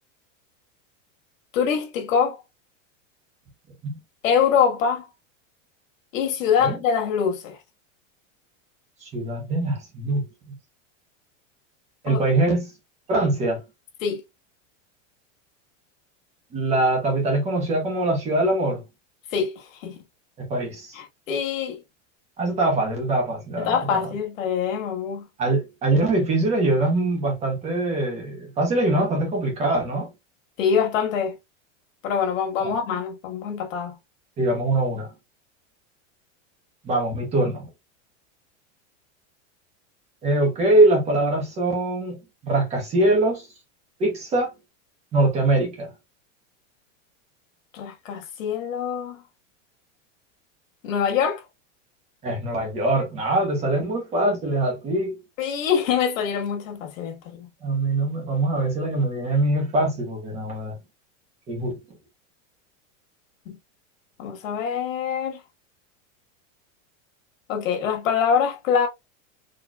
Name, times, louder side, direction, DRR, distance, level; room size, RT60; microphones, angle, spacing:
voice 1, 1.5-2.4 4.2-5.1 6.1-7.6 12.1-12.2 14.0-14.2 19.3-20.0 20.9-21.8 23.6-25.3 30.6-31.3 32.0-34.0 47.7-49.2 50.8-51.4 55.4-57.5 63.4-63.6 64.2-65.4 67.5-68.9, left 7 dB, 85° left, 1.5 m, -24 dB
voice 2, 9.0-10.5 12.0-12.7 13.1-13.6 16.5-18.8 20.4-20.9 22.4-24.1 25.4-30.1 32.6-32.7 34.4-35.1 36.8-37.7 40.2-43.5 44.0-44.5 45.1-45.9 52.2-55.2 57.6-60.8 61.5-61.8, right 2 dB, 15° right, 1.0 m, -23 dB
4.2 x 3.1 x 2.3 m
supercardioid pair, 175°, 39 cm